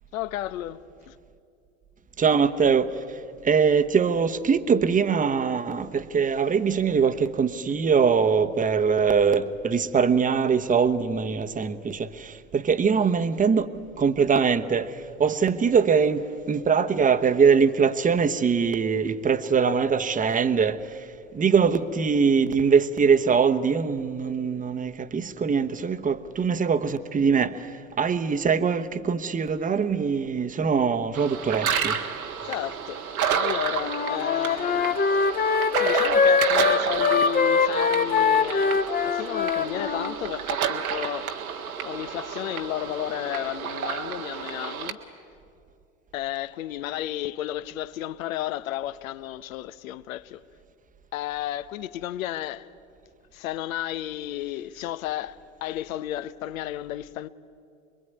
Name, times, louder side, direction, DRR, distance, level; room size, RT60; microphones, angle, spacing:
voice 1, 0.1-1.1 32.4-35.0 35.8-41.3 41.8-45.0 46.1-50.4 51.1-52.7 53.3-57.3, left 13 dB, 70° left, 1.0 m, -33 dB
voice 2, 2.2-13.7 14.0-21.1 21.3-32.0, right 6 dB, 20° right, 1.1 m, -22 dB
sound 1, 31.1-44.9, right 7 dB, 80° right, 1.7 m, -30 dB
Wind instrument woodwind instrument, 33.8-40.1, left 5 dB, 20° left, 1.1 m, -23 dB
26.0 x 22.0 x 9.5 m
hypercardioid pair, 85°, 42 cm